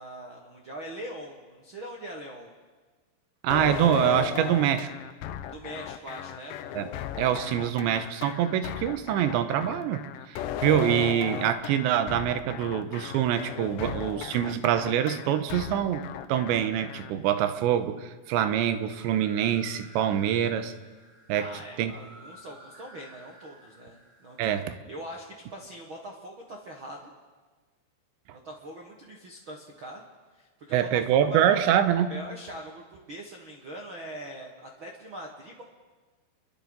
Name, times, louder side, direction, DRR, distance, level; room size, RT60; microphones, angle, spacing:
voice 1, 0.0-2.5 5.5-6.6 21.3-24.4 24.9-27.1 28.3-30.0 30.3-31.6 32.1-35.6, right 1 dB, 70° right, 0 dB, 1.2 m, -42 dB
voice 2, 3.4-4.9 6.7-6.9 7.2-20.7 21.3-21.5 21.8-21.9 24.4-24.8 30.7-32.2, right 10 dB, 90° right, 10 dB, 3.2 m, -25 dB
sound 1, 3.5-17.1, left 11 dB, 85° left, 2.0 m, -36 dB
sound 2, 18.7-24.6, right 1 dB, 35° right, 4.5 m, -53 dB
29.0 x 22.5 x 4.0 m, 1.4 s
omnidirectional pair, 5.1 m